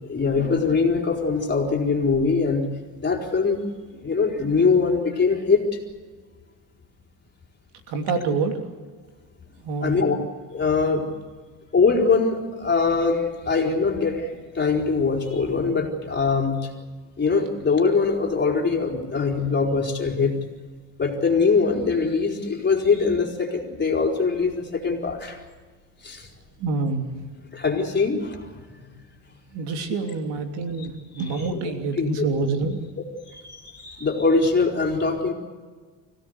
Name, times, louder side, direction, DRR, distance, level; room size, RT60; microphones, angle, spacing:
voice 1, 0.0-2.7 3.0-3.6 3.9-5.8 9.8-10.2 10.5-11.1 11.7-16.7 17.2-20.3 21.0-25.4 26.0-26.3 27.5-28.6 31.5-31.6 32.0-32.1 33.3-35.3, left 4 dB, 25° left, 1 dB, 4.3 m, -22 dB
voice 2, 7.9-8.7 9.6-10.1 26.6-27.2 29.5-32.8, right 4 dB, 80° right, 5 dB, 3.2 m, -27 dB
25.5 x 17.0 x 8.2 m, 1.4 s
cardioid pair, 120°, 41 cm